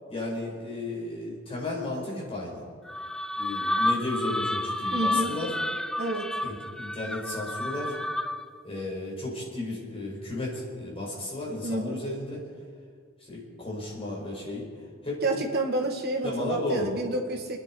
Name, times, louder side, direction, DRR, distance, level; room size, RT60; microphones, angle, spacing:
voice 1, 0.1-2.6 3.4-5.5 6.4-8.0 8.6-12.4 13.2-14.7 15.0-15.4 16.2-16.9, left 2 dB, 30° left, -4 dB, 5.3 m, -34 dB
sound 1, 2.9-8.6, left 1 dB, 5° left, 0.4 m, -30 dB
voice 2, 4.9-5.4 6.0-6.3 11.6-12.0 15.2-17.6, right 2 dB, 50° right, 1 dB, 2.3 m, -29 dB
29.0 x 10.5 x 4.7 m, 2.1 s
head